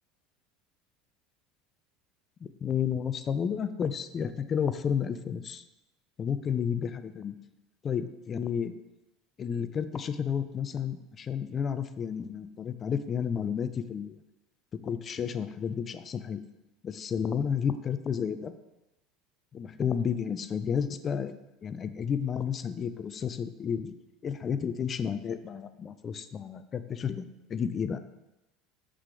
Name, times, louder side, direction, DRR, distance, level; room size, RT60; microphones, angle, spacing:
voice 1, 2.4-5.6 6.2-7.3 7.8-8.7 9.4-14.2 14.8-16.4 16.8-18.5 19.5-21.3 21.6-23.9 24.2-28.0, left 7 dB, 35° left, 12 dB, 0.4 m, -31 dB
5.9 x 4.8 x 3.3 m, 0.98 s
hypercardioid pair, 70°, 0 cm